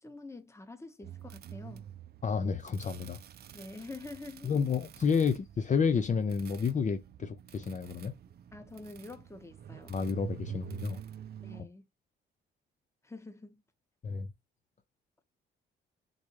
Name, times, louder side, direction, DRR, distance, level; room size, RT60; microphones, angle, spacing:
voice 1, 0.0-1.9 3.5-4.5 8.5-9.9 11.4-11.9 13.0-13.6, left 3 dB, 15° left, 1.0 m, -46 dB
sound 1, 1.0-11.6, right 9 dB, 55° right, 0.5 m, -48 dB
voice 2, 2.2-3.2 4.4-8.1 9.9-11.0 14.0-14.3, left 6 dB, 40° left, 0.7 m, -30 dB
4.0 x 3.5 x 3.1 m
cardioid pair, 90°, 20 cm